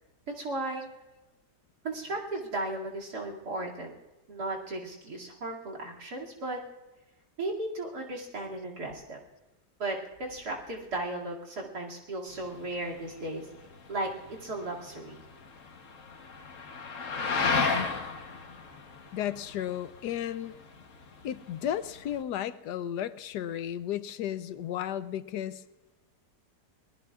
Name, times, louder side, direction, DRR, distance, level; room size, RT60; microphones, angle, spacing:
voice 1, 0.3-0.9 1.8-3.9 4.3-6.6 7.4-9.2 9.8-13.5 13.9-15.2, right 2 dB, 75° right, -2 dB, 3.1 m, -35 dB
sound 1, 12.3-22.2, left 4 dB, 55° left, 1.5 m, -35 dB
voice 2, 19.1-20.6 21.2-25.6, left 10 dB, 85° left, 13 dB, 1.3 m, -34 dB
26.5 x 20.5 x 2.4 m, 1.1 s
omnidirectional pair, 1.7 m